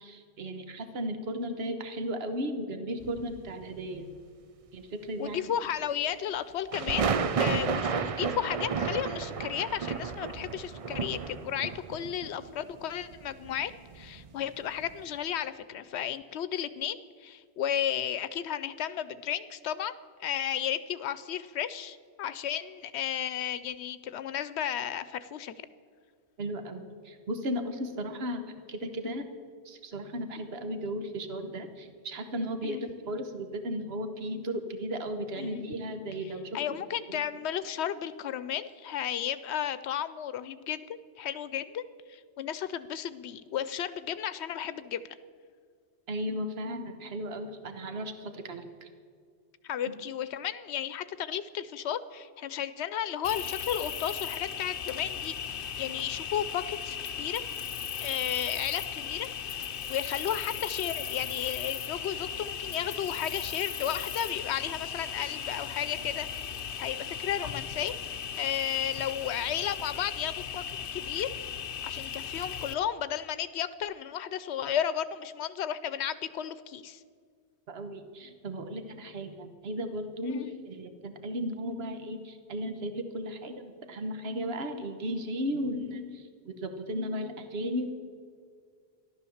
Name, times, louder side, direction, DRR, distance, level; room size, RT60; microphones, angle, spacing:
voice 1, 0.0-4.1 4.7-5.4 26.4-29.3 29.6-36.8 37.1-37.2 46.1-48.9 77.7-87.9, equal, 70° right, 7 dB, 1.4 m, -35 dB
sound 1, 3.0-3.7 6.7-14.5 14.8-15.0, right 5 dB, 45° right, 0.5 m, -32 dB
voice 2, 5.2-7.1 7.4-19.9 20.2-25.7 32.6-32.8 35.4-35.6 36.5-41.8 42.1-45.1 49.6-57.4 58.0-59.6 59.9-66.3 66.8-67.9 68.4-71.3 71.8-77.0 80.2-80.5, left 9 dB, 85° left, 14 dB, 0.9 m, -33 dB
Cricket, 53.2-72.7, left 8 dB, 60° left, 0.8 m, -37 dB
14.5 x 11.5 x 7.1 m, 2.1 s
omnidirectional pair, 1.1 m